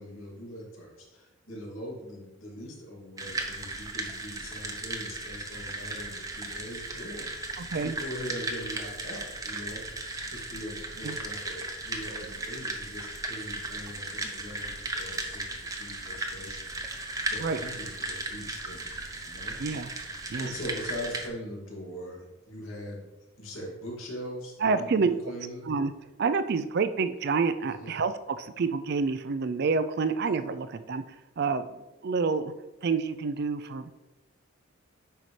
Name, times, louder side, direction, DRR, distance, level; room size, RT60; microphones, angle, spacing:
voice 1, 0.0-9.9 10.3-15.4 15.7-19.6 20.4-23.1 23.4-24.9 25.2-25.6 27.6-27.9, equal, 85° left, -3 dB, 2.4 m, -41 dB
sound 1, 3.2-21.3, right 2 dB, 15° right, 0.8 m, -36 dB
voice 2, 7.6-8.0 11.0-11.2 17.4-17.6 19.6-19.9 20.3-20.5 24.6-25.1 25.7-25.9 26.2-31.0 31.4-32.5 32.8-33.9, right 4 dB, 55° right, 11 dB, 0.4 m, -28 dB
9.0 x 5.7 x 3.2 m, 1.1 s
head